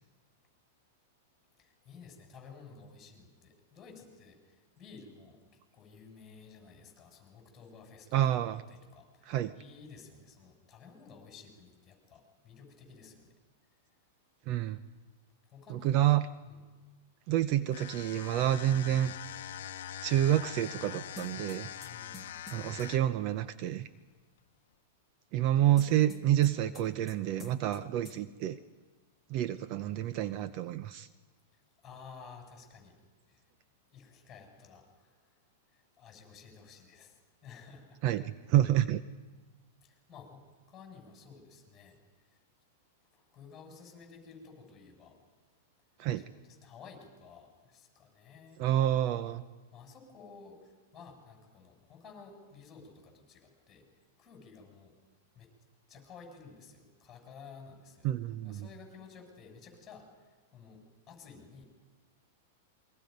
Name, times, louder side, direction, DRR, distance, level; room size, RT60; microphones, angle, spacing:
voice 1, 1.6-5.4 5.7-8.2 8.7-13.3 15.5-16.1 16.4-16.6 21.8-22.4 31.8-32.9 33.3-33.4 33.9-35.2 35.7-38.0 39.8-40.4 40.7-42.4 43.1-45.2 46.1-48.6 49.7-53.8 54.2-54.9 55.3-55.5 55.9-58.1 58.4-60.1 60.5-60.8 61.1-61.7, left 5 dB, 20° left, 1 dB, 6.8 m, -53 dB
voice 2, 8.1-8.6 9.3-9.5 14.5-14.8 15.7-16.3 17.3-19.1 20.0-21.7 22.5-23.9 25.3-28.6 29.3-31.1 38.0-39.0 46.0-46.2 48.6-49.4 58.0-58.7, right 12 dB, 40° right, 13 dB, 0.6 m, -28 dB
sound 1, 17.7-23.2, left 10 dB, 70° left, 0.9 m, -43 dB
sound 2, 21.2-22.9 25.8-27.1 27.4-27.8 28.0-28.2, left 1 dB, 5° left, 1.6 m, -48 dB
28.0 x 22.5 x 5.3 m, 1.3 s
supercardioid pair, 150°, 0 cm